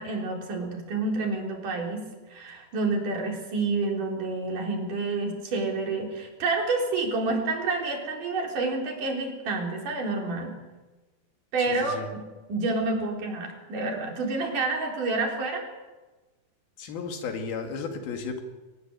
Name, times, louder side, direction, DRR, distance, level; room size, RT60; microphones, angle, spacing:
voice 1, 0.0-2.0 2.3-10.5 11.5-12.0 12.5-15.6, right 3 dB, 60° right, 1 dB, 5.3 m, -28 dB
voice 2, 11.6-12.1 16.8-18.4, left 5 dB, 80° left, 5 dB, 4.1 m, -34 dB
22.5 x 20.0 x 7.8 m, 1.2 s
omnidirectional pair, 4.4 m